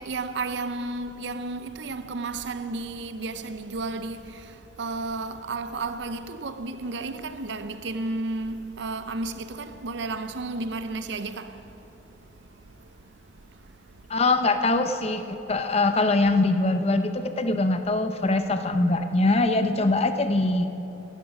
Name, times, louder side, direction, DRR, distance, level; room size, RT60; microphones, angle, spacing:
voice 1, 0.0-4.5 4.8-11.6 19.6-19.9, right 3 dB, 65° right, 0.6 m, -32 dB
voice 2, 14.1-20.7, left 2 dB, 30° left, 0.6 m, -23 dB
13.5 x 11.0 x 6.0 m
head